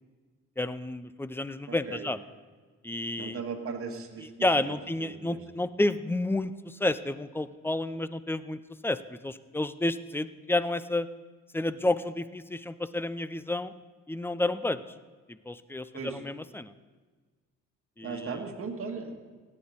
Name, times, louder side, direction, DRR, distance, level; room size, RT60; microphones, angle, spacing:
voice 1, 0.6-2.2 2.8-3.4 4.4-11.1 11.5-13.7 14.1-14.8 15.3-16.7 18.0-18.3, left 2 dB, 10° left, 14 dB, 0.4 m, -30 dB
voice 2, 1.7-2.1 3.2-4.3 4.6-5.4 15.9-16.2 18.0-19.3, right 5 dB, 45° right, 2 dB, 1.8 m, -38 dB
16.5 x 9.7 x 4.0 m, 1.4 s
cardioid pair, 90°, 30 cm